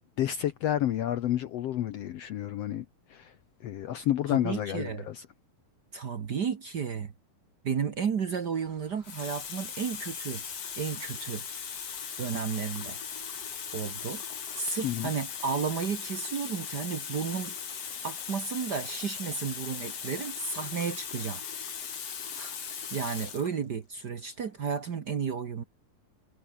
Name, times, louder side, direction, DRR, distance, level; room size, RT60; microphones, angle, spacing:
voice 1, 0.2-2.8 3.1-3.3 3.6-5.2 14.8-15.1, left 12 dB, 85° left, 1.4 m, -30 dB
voice 2, 4.3-5.1 5.9-7.1 7.6-10.4 10.8-11.4 12.2-13.0 13.7-14.2 14.5-17.5 18.0-21.4 22.4-25.6, right 6 dB, 75° right, 0.9 m, -33 dB
Water tap faucet, 8.2-8.5 9.0-23.5 24.4-24.6, left 7 dB, 45° left, 3.4 m, -38 dB
sound 1, 8.5-15.5, right 4 dB, 55° right, 7.2 m, -60 dB
omnidirectional pair, 4.2 m